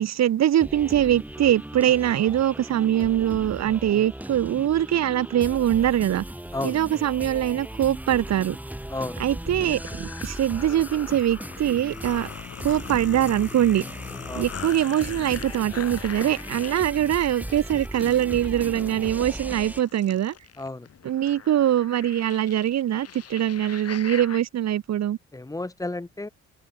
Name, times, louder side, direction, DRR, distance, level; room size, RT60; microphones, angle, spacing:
voice 1, 0.0-6.2 6.6-8.6 9.2-12.3 12.6-13.8 14.3-20.3 21.0-25.2, right 11 dB, 60° right, 1.2 m, -23 dB
sound 1, 0.6-19.8, right 1 dB, 5° right, 2.1 m, -37 dB
sound 2, 9.5-24.4, left 8 dB, 55° left, 4.9 m, -41 dB
voice 2, 25.3-26.3, left 2 dB, 10° left, 1.2 m, -32 dB
open air
cardioid pair, 90°, 30 cm